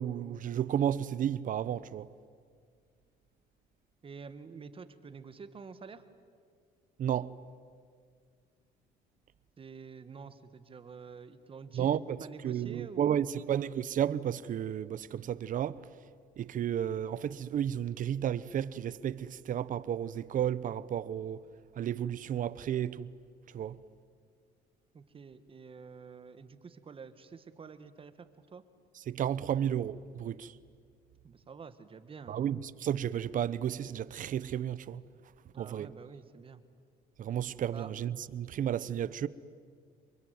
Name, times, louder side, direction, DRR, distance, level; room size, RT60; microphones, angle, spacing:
voice 1, 0.0-2.1 7.0-7.4 11.7-15.8 16.4-21.4 21.8-23.1 23.5-23.8 29.1-30.5 32.3-35.0 35.6-35.9 37.2-39.3, right 10 dB, 50° right, 0.9 m, -32 dB
voice 2, 4.0-6.0 9.6-11.9 12.2-13.4 24.9-28.3 28.5-28.6 31.2-32.4 35.5-36.6 37.7-37.9, right 5 dB, 30° right, 1.8 m, -48 dB
27.0 x 23.0 x 9.5 m
cardioid pair, 110°, 17 cm